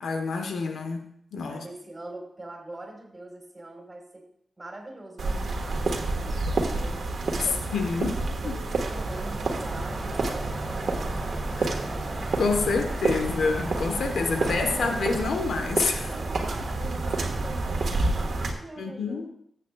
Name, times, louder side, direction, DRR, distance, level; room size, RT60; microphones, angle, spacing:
voice 1, 0.0-1.1 1.3-1.6 7.7-8.1 8.4-8.6 11.6-11.7 12.4-16.1 18.8-19.3, left 4 dB, 90° left, 5 dB, 1.1 m, -27 dB
voice 2, 1.5-4.3 4.6-7.1 7.4-12.1 12.8-13.1 13.7-13.9 14.4-15.2 16.0-19.3, right 2 dB, 30° right, 0 dB, 3.9 m, -43 dB
sound 1, 5.2-18.5, right 2 dB, 75° right, 1.5 m, -29 dB
sound 2, 8.9-15.3, right 1 dB, 10° right, 1.7 m, -38 dB
14.0 x 8.3 x 2.3 m, 0.67 s
cardioid pair, 60°, 0 cm